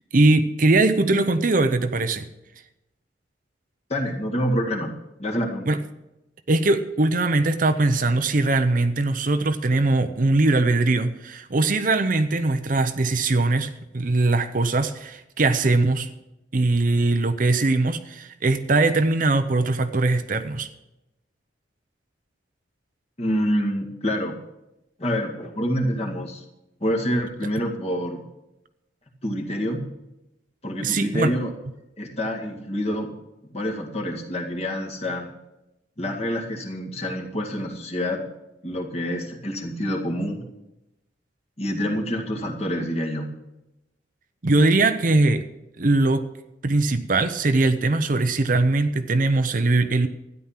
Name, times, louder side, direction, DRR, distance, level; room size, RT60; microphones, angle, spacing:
voice 1, 0.1-2.3 5.7-5.8 6.5-16.1 16.5-20.7 30.8-31.3 44.4-45.4 45.8-46.3 46.6-50.1, right 2 dB, 45° right, 9 dB, 0.7 m, -21 dB
voice 2, 3.9-4.9 5.2-5.8 23.2-24.4 25.0-26.4 26.8-28.2 29.2-29.8 30.6-31.5 32.0-33.1 33.5-35.3 36.0-38.2 38.6-40.5 41.6-43.3, equal, 35° left, 1 dB, 2.0 m, -27 dB
13.0 x 10.0 x 5.9 m, 0.92 s
head